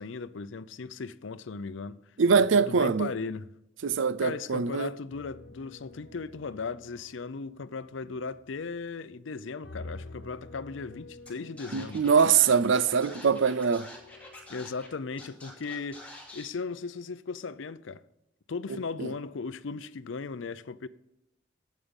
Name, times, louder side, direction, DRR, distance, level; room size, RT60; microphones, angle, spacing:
voice 1, 0.0-2.0 2.4-3.5 4.2-12.0 14.5-16.0 16.3-18.0 18.5-20.9, left 4 dB, 80° left, 0.5 m, -37 dB
voice 2, 2.2-3.1 3.8-4.9 11.7-13.9 18.7-19.1, right 6 dB, 80° right, 0.5 m, -23 dB
sound 1, 5.1-9.2 9.6-15.1 15.6-16.1, left 2 dB, 55° left, 1.4 m, -50 dB
Scratching (performance technique), 11.3-11.4 11.6-14.9 15.2-16.5, left 2 dB, 5° left, 2.5 m, -47 dB
11.0 x 8.4 x 5.3 m
head